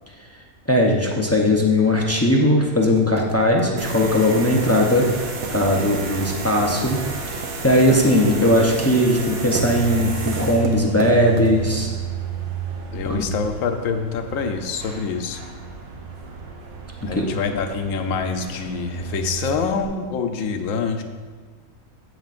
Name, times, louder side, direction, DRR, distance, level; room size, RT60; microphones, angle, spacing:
voice 1, 0.3-7.0 7.3-11.9 13.1-13.2 17.0-17.3, left 1 dB, 25° left, -1 dB, 0.3 m, -19 dB
sound 1, 2.7-12.1, right 4 dB, 85° right, 1.1 m, -35 dB
sound 2, 3.8-19.9, right 5 dB, 55° right, 1.0 m, -32 dB
voice 2, 12.9-15.4 17.1-21.0, left 5 dB, 80° left, 6 dB, 1.0 m, -26 dB
9.1 x 8.0 x 2.5 m, 1.5 s
omnidirectional pair, 1.4 m